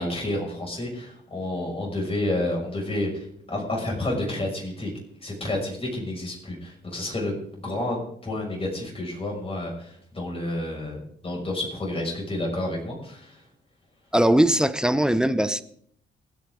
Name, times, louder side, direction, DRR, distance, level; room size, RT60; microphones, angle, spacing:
voice 1, 0.0-4.9 5.2-13.4, left 1 dB, 30° left, -1 dB, 6.3 m, -30 dB
voice 2, 14.1-15.6, right 1 dB, 5° right, 13 dB, 0.8 m, -20 dB
28.0 x 9.4 x 3.8 m, 0.67 s
cardioid pair, 90°, 20 cm